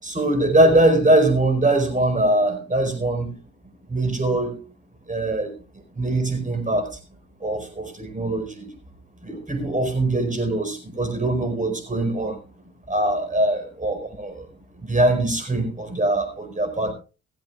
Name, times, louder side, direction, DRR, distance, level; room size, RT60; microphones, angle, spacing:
voice 1, 0.0-3.3 3.9-4.6 5.1-5.5 5.9-6.9 7.4-8.7 9.2-12.4 12.9-14.4 14.8-16.9, right 1 dB, 20° right, 7 dB, 4.9 m, -22 dB
16.0 x 15.0 x 2.4 m, 0.32 s
figure-of-eight pair, 40°, 38 cm